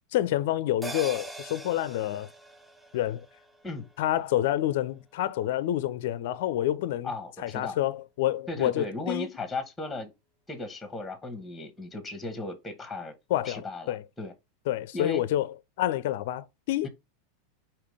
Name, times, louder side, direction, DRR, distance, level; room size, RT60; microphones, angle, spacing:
voice 1, 0.1-2.3 2.9-3.3 4.0-7.1 7.4-9.3 13.3-13.6 13.9-14.0 14.7-15.5 15.8-16.9, left 13 dB, 60° left, 0.4 m, -28 dB
sound 1, 0.8-5.5 5.9-6.0, right 2 dB, 10° right, 0.7 m, -44 dB
voice 2, 7.0-7.8 8.5-10.1 10.5-13.1 13.4-14.3 14.9-15.2 16.8-16.9, left 2 dB, 10° left, 1.0 m, -36 dB
5.0 x 2.9 x 3.3 m
hypercardioid pair, 90°, 0 cm